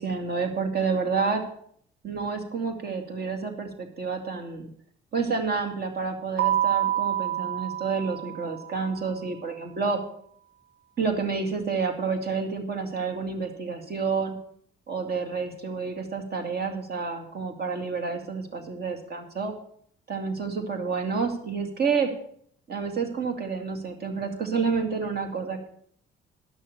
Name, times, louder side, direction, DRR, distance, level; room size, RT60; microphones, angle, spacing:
voice 1, 0.0-1.4 2.0-4.7 5.1-10.0 11.0-14.4 14.9-19.5 20.1-22.1 22.7-25.7, right 5 dB, 55° right, 4 dB, 2.3 m, -29 dB
Keyboard (musical), 6.4-8.9, right 12 dB, 90° right, 1.8 m, -27 dB
11.0 x 6.4 x 7.2 m, 0.63 s
cardioid pair, 90°, 20 cm